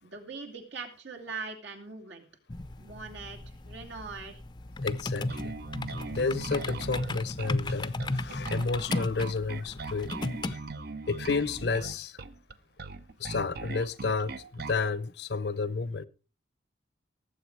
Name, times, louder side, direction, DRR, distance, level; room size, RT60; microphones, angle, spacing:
voice 1, 0.0-2.3 2.8-4.4, right 4 dB, 75° right, 2.7 m, -41 dB
sound 1, 2.5-10.5, left 2 dB, 25° left, 0.6 m, -35 dB
voice 2, 4.8-5.6 6.1-10.6 11.1-12.2 13.2-16.1, left 4 dB, 65° left, 0.7 m, -31 dB
Bass guitar, 5.3-14.9, right 3 dB, 60° right, 0.8 m, -40 dB
18.0 x 7.9 x 4.6 m
head